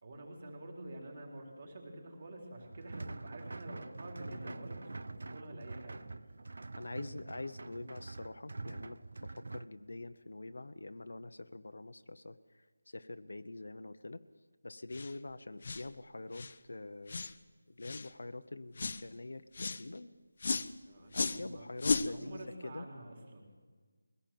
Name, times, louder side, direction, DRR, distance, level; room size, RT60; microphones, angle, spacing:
voice 1, 0.0-6.1 7.0-7.1 20.9-21.7 22.0-23.5, right 1 dB, 30° right, 0 dB, 3.8 m, -48 dB
sound 1, 2.6-9.7, right 3 dB, 50° right, 0.6 m, -45 dB
voice 2, 4.3-4.7 6.8-14.2 14.6-17.3 17.7-20.1 21.1-22.8, left 2 dB, 60° left, 10 dB, 0.9 m, -45 dB
sound 2, 14.9-15.1 15.6-15.9 16.3-16.6 17.1-17.3 17.8-18.1 18.8-19.0 19.5-19.8 20.4-20.7 21.1-21.4 21.8-22.1, left 4 dB, 30° left, 0.6 m, -34 dB
22.0 x 17.0 x 7.6 m, 1.5 s
figure-of-eight pair, 180°, 0 cm